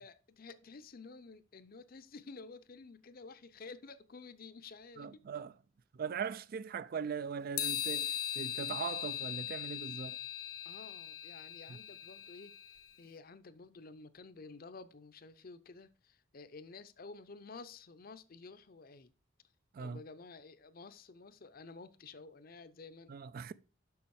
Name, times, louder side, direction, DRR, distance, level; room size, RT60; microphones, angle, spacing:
voice 1, 0.0-5.2 10.6-19.1 19.8-23.2, left 4 dB, 45° left, 0.6 m, -52 dB
voice 2, 5.0-5.5 5.9-10.2 11.7-11.8 19.7-20.0 23.1-23.5, right 6 dB, 45° right, 0.3 m, -40 dB
sound 1, 7.6-12.9, left 10 dB, 80° left, 1.1 m, -39 dB
7.0 x 6.1 x 4.7 m
head